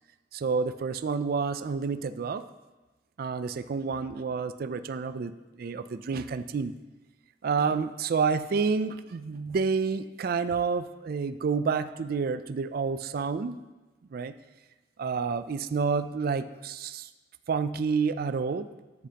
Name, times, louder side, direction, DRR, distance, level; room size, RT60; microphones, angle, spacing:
voice 1, 0.3-2.4 3.2-6.7 7.4-13.6 14.1-14.3 15.0-17.1 17.5-18.7, right 5 dB, 55° right, 12 dB, 0.4 m, -29 dB
13.5 x 8.2 x 2.9 m, 1.2 s
head